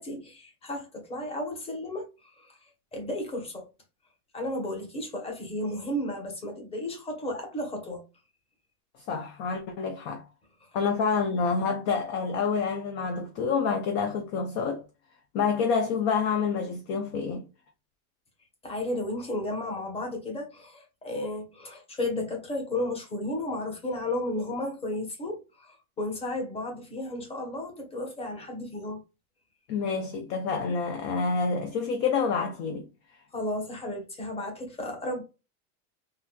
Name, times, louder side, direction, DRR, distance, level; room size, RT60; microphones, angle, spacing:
voice 1, 0.0-2.6 2.9-3.7 4.3-8.0 10.6-10.7 18.6-29.0 33.3-35.2, left 1 dB, 15° left, 0.9 m, -33 dB
voice 2, 9.1-10.2 10.7-14.8 15.3-17.4 29.7-32.9, left 5 dB, 35° left, 0.4 m, -28 dB
3.7 x 2.6 x 2.2 m
supercardioid pair, 160°, 42 cm